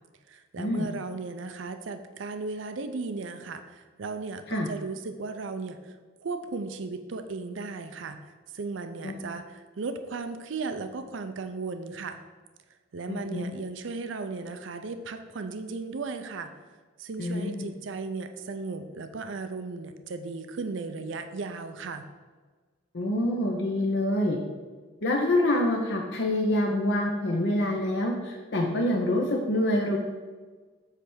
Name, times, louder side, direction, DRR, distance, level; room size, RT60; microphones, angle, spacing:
voice 1, 0.3-12.2 12.9-16.5 17.0-22.1, right 4 dB, 70° right, 8 dB, 0.5 m, -36 dB
voice 2, 13.1-13.5 17.2-17.7 22.9-24.4 25.0-30.0, left 1 dB, 60° left, 0 dB, 0.7 m, -26 dB
8.1 x 3.4 x 6.1 m, 1.4 s
head